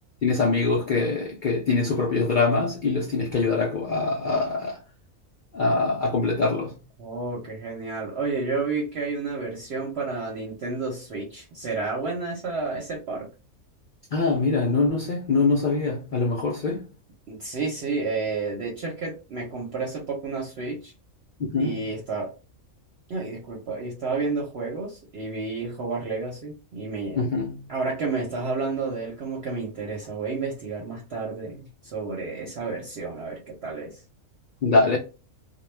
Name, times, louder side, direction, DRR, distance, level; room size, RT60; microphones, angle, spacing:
voice 1, 0.2-4.8 5.5-6.8 14.1-16.9 21.5-21.8 27.2-27.7 34.6-35.0, left 3 dB, 85° left, 0.4 m, -23 dB
voice 2, 7.0-13.3 17.3-20.9 21.6-22.3 23.1-27.2 27.7-34.0, right 4 dB, 55° right, 0.9 m, -31 dB
2.2 x 2.2 x 3.1 m
omnidirectional pair, 1.5 m